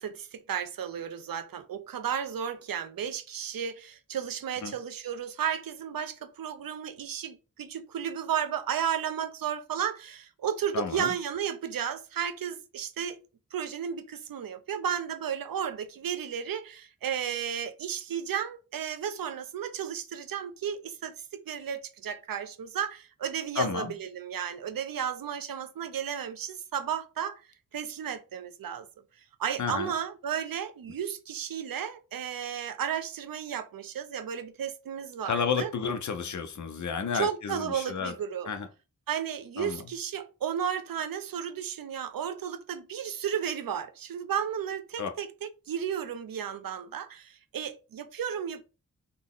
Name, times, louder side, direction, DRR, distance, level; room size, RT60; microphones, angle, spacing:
voice 1, 0.0-13.2 13.5-27.4 27.7-28.9 29.4-35.7 37.1-38.5 39.1-48.6, right 8 dB, 85° right, 0.5 m, -33 dB
voice 2, 10.7-11.1 23.6-23.9 29.6-29.9 35.2-38.1 38.4-38.7 39.6-39.8 45.0-45.1, left 6 dB, 60° left, 0.6 m, -31 dB
4.0 x 2.1 x 3.6 m
wide cardioid pair, 105°, 33 cm